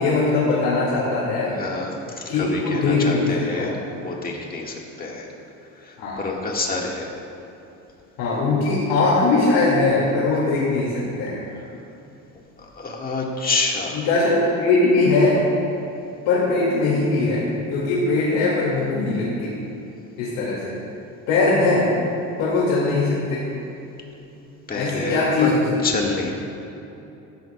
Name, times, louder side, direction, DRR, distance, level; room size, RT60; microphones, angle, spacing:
voice 1, 0.0-1.5 2.3-3.8 6.0-6.2 8.2-11.4 13.9-15.4 16.3-19.6 20.2-20.8 21.3-21.9 22.4-23.5 24.7-25.6 25.9-26.0, left 3 dB, 85° left, -6 dB, 2.2 m, -20 dB
voice 2, 1.6-3.8 4.0-5.3 5.8-7.1 12.6-14.0 24.7-25.5 25.8-26.3, left 3 dB, 25° left, -1 dB, 1.7 m, -27 dB
15.5 x 11.0 x 2.3 m, 2.9 s
cardioid pair, 125°, 34 cm